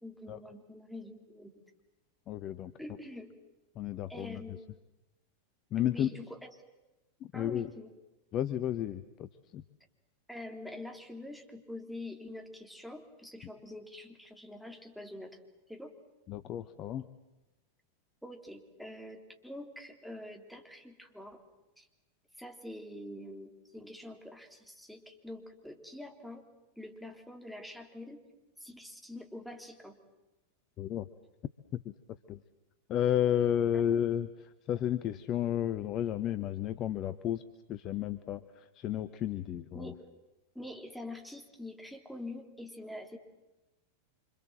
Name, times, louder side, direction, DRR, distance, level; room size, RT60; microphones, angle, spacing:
voice 1, 0.0-1.5 2.8-3.3 4.1-4.6 5.8-6.5 7.3-7.9 10.3-15.4 15.7-15.9 18.2-21.4 21.8-21.9 22.4-26.5 26.7-28.2 28.6-30.0 33.7-34.0 39.7-40.0 40.5-43.2, left 1 dB, ahead, 3 dB, 3.4 m, -45 dB
voice 2, 2.3-2.7 3.8-4.4 5.7-6.1 7.3-7.7 8.3-9.6 16.3-17.1 30.8-31.1 31.7-31.9 32.3-32.4 32.9-37.4 37.7-39.9, left 10 dB, 35° left, 12 dB, 1.0 m, -32 dB
26.5 x 26.5 x 7.7 m, 1.0 s
figure-of-eight pair, 90°, 0 cm